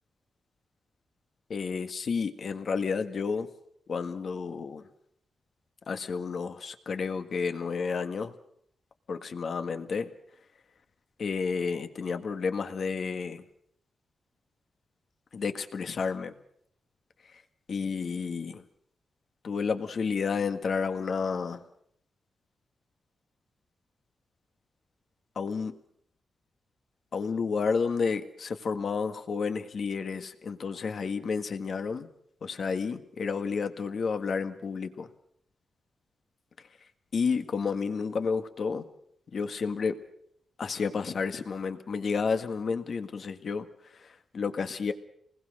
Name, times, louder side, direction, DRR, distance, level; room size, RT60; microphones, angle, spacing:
voice 1, 1.5-3.5 3.9-4.9 5.9-8.3 9.1-10.1 11.2-13.4 15.3-16.3 17.3-17.4 17.7-18.6 19.4-21.6 25.3-25.8 27.1-32.1 32.4-35.1 37.1-38.9 39.3-40.0 40.6-44.9, left 5 dB, 55° left, 8 dB, 1.8 m, -31 dB
27.5 x 20.0 x 6.6 m, 0.70 s
wide cardioid pair, 115°, 0 cm